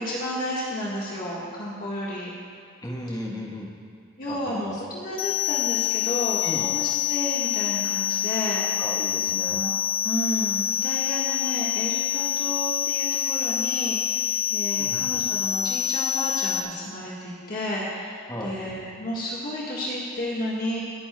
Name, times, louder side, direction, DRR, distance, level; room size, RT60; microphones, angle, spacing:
voice 1, 0.0-2.3 4.2-8.8 9.4-9.7 10.0-20.8, equal, 40° left, -6 dB, 1.5 m, -32 dB
voice 2, 2.8-3.7 4.3-4.8 6.4-6.7 8.8-9.6 14.8-15.0 18.3-18.5, left 1 dB, 15° left, -1 dB, 1.1 m, -35 dB
sound 1, 5.2-16.6, left 10 dB, 80° left, 1.1 m, -26 dB
29.0 x 9.8 x 2.3 m, 2.3 s
head